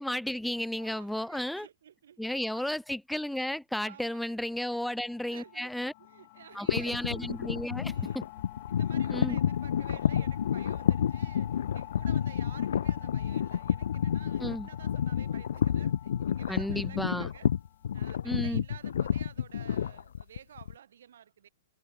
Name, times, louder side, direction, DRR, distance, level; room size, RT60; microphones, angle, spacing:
voice 1, 0.0-1.7 2.2-5.9 6.5-8.2 9.1-9.4 14.4-14.7 16.5-17.3 18.2-18.6, left 1 dB, ahead, 0.6 m, -33 dB
voice 2, 0.8-2.8 3.8-4.4 5.3-7.1 7.8-8.2 8.7-17.5 17.9-21.5, right 9 dB, 75° right, 7.5 m, -52 dB
sound 1, 4.7-18.2, left 27 dB, 40° left, 1.9 m, -49 dB
sound 2, 6.7-20.7, left 9 dB, 75° left, 1.0 m, -30 dB
hypercardioid pair, 150°, 0 cm